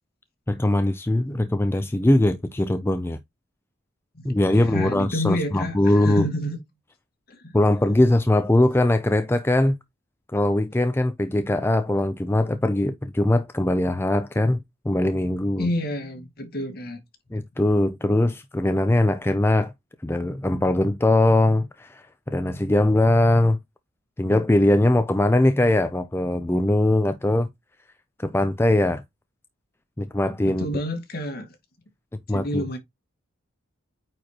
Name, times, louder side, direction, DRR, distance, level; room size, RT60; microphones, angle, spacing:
voice 1, 0.5-3.2 4.2-6.3 7.5-9.8 10.3-15.7 17.3-19.7 20.0-23.6 24.2-27.5 28.2-29.0 30.0-30.7 32.3-32.7, left 1 dB, 10° left, 0.4 m, -21 dB
voice 2, 4.1-6.6 7.3-7.4 15.6-17.0 30.5-31.5 32.3-32.8, left 1 dB, 45° left, 2.2 m, -29 dB
8.9 x 4.8 x 2.9 m
head